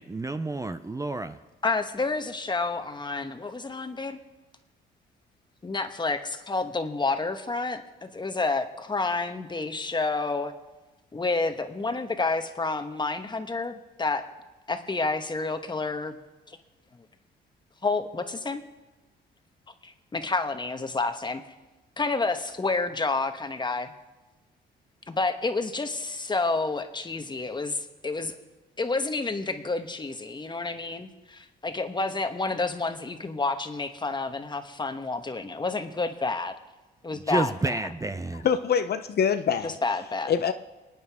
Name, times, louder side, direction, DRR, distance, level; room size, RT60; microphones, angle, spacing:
voice 1, 0.0-1.4 37.1-38.5, right 2 dB, 15° right, 10 dB, 0.6 m, -30 dB
voice 2, 1.6-4.2 5.6-10.5 11.1-14.2 14.7-16.2 16.5-16.6 17.8-18.6 19.8-21.4 22.0-23.9 25.1-28.3 28.8-36.5 37.0-37.7 39.6-40.3, left 3 dB, 20° left, 7 dB, 1.2 m, -29 dB
voice 3, 38.4-39.8 40.3-40.5, left 7 dB, 55° left, 10 dB, 0.7 m, -24 dB
28.0 x 9.5 x 3.6 m, 1.1 s
cardioid pair, 90°, 20 cm